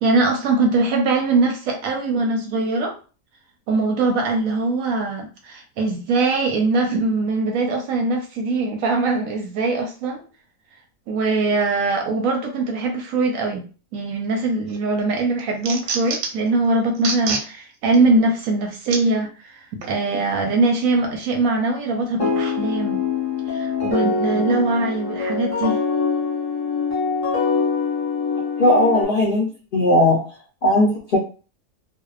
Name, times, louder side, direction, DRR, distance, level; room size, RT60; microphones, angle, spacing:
voice 1, 0.0-2.9 3.7-10.2 11.1-13.7 13.9-23.0 23.5-25.8, right 3 dB, 70° right, 2 dB, 0.9 m, -22 dB
sound 1, 14.4-14.8 15.2-16.5 16.9-17.5 17.9-18.0 18.9-19.0 19.8-19.9, right 5 dB, 85° right, 1.2 m, -27 dB
sound 2, 22.2-29.0, left 5 dB, 25° left, 0.9 m, -23 dB
voice 2, 28.6-30.2 30.6-31.2, left 1 dB, 85° left, -4 dB, 0.4 m, -17 dB
2.7 x 2.1 x 2.3 m, 0.36 s
omnidirectional pair, 1.7 m